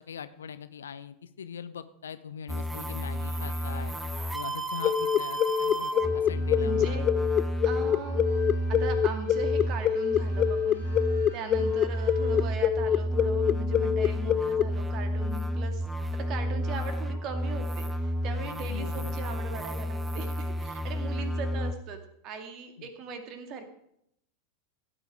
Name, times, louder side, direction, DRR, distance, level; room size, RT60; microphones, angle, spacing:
voice 1, 0.0-3.9 4.3-7.3 7.8-7.9 18.7-19.2 22.8-22.9, left 7 dB, 75° left, 14 dB, 0.7 m, -41 dB
sound 1, 2.5-21.7, equal, 5° right, 0.9 m, -31 dB
sound 2, 3.1-12.5, equal, 70° right, 5.5 m, -53 dB
sound 3, 4.8-14.6, left 9 dB, 35° left, 0.4 m, -25 dB
voice 2, 5.8-7.1 7.6-8.2 8.7-10.8 11.3-15.9 16.1-23.7, right 5 dB, 40° right, 6 dB, 2.2 m, -39 dB
16.0 x 9.1 x 4.8 m, 0.74 s
figure-of-eight pair, 90°, 0 cm